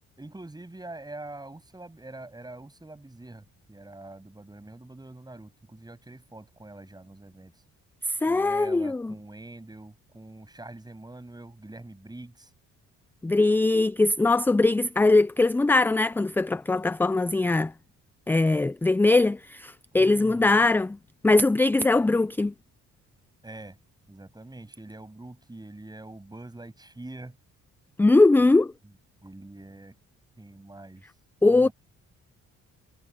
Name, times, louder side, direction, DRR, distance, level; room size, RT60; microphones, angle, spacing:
voice 1, 0.2-7.6 8.2-12.5 19.9-20.7 23.4-23.8 24.1-27.4 28.8-28.9 29.2-30.0 30.4-31.0 31.5-31.7, right 2 dB, 15° right, 7.7 m, -44 dB
voice 2, 8.0-9.1 13.2-17.7 18.3-21.0 21.2-22.5 28.0-28.7 31.4-31.7, left 2 dB, 5° left, 0.3 m, -21 dB
cardioid pair, 90°, 30 cm